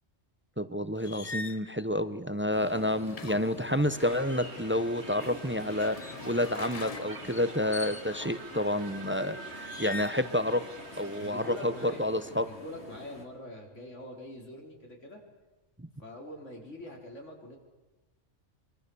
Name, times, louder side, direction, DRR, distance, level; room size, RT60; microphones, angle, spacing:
voice 1, 0.6-10.6 11.0-12.4 15.8-15.9, left 1 dB, 10° right, 12 dB, 0.7 m, -29 dB
sound 1, 1.0-1.6 3.0-4.3 5.4-8.4 9.6-10.3 10.7-11.3, left 3 dB, 35° left, 0.8 m, -43 dB
sound 2, 2.5-13.2, left 2 dB, 65° left, 3.2 m, -48 dB
sound 3, 4.0-12.4, right 3 dB, 65° right, 2.4 m, -46 dB
voice 2, 11.2-12.1 12.3-15.2 16.0-17.6, left 1 dB, 85° left, 0 dB, 4.6 m, -44 dB
25.5 x 24.0 x 7.0 m, 1.1 s
omnidirectional pair, 1.2 m